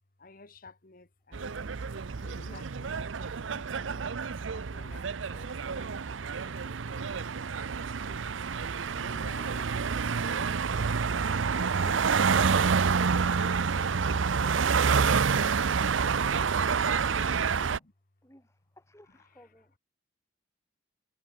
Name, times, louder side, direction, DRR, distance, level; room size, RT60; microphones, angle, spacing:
voice 1, 0.2-1.8 2.2-4.1 4.5-8.3 8.9-10.4 11.8-13.5 17.6-17.9 19.1-19.5, left 2 dB, 50° left, 1.6 m, -54 dB
sound 1, 1.3-17.8, right 5 dB, 90° right, 0.7 m, -28 dB
voice 2, 16.8-17.6 18.2-19.8, left 2 dB, 15° left, 4.8 m, -53 dB
head